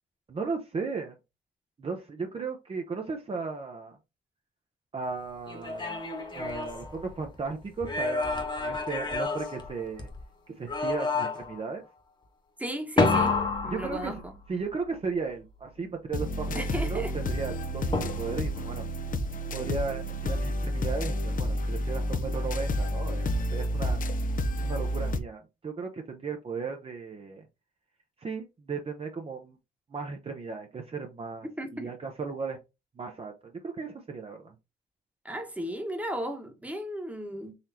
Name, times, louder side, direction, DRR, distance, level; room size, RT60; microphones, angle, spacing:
voice 1, 0.3-1.2 1.8-4.0 4.9-6.0 6.3-10.1 10.5-11.8 13.7-14.2 14.5-18.8 19.5-24.0 24.6-27.4 28.2-29.6 29.9-32.6 33.0-34.5, right 4 dB, 35° right, 0.7 m, -36 dB
sound 1, 5.5-7.4 7.8-10.2 10.7-11.6 13.0-14.6 17.9-18.6, left 3 dB, 25° left, 1.2 m, -29 dB
voice 2, 12.6-13.4 13.6-14.3 16.5-17.1 31.6-31.9 35.2-37.5, equal, 10° right, 1.1 m, -35 dB
sound 2, 16.1-25.2, equal, 50° left, 0.6 m, -30 dB
4.0 x 3.1 x 2.8 m
cardioid pair, 75°, 17 cm